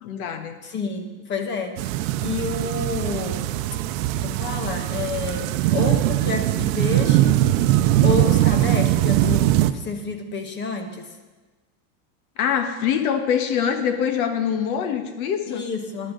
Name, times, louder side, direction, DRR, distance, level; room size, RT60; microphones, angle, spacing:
voice 1, 0.0-0.6 12.4-15.7, left 8 dB, 80° left, 8 dB, 1.5 m, -24 dB
voice 2, 0.6-3.5 4.2-7.4 8.0-11.2 15.5-16.1, left 4 dB, 25° left, 6 dB, 1.2 m, -29 dB
sound 1, 1.8-9.7, right 14 dB, 65° right, 0.7 m, -21 dB
15.0 x 11.0 x 3.9 m, 1.2 s
supercardioid pair, 155°, 43 cm